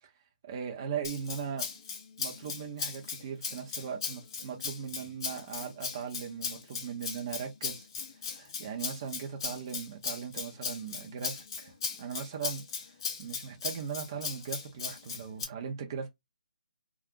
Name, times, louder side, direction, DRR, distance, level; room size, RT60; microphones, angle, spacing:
voice 1, 0.4-1.7 2.2-7.9 8.3-12.6 13.2-16.1, right 7 dB, 30° right, 0.7 m, -39 dB
Rattle (instrument), 1.0-15.4, left 5 dB, 30° left, 0.5 m, -38 dB
2.4 x 2.3 x 3.6 m
hypercardioid pair, 165°, 5 cm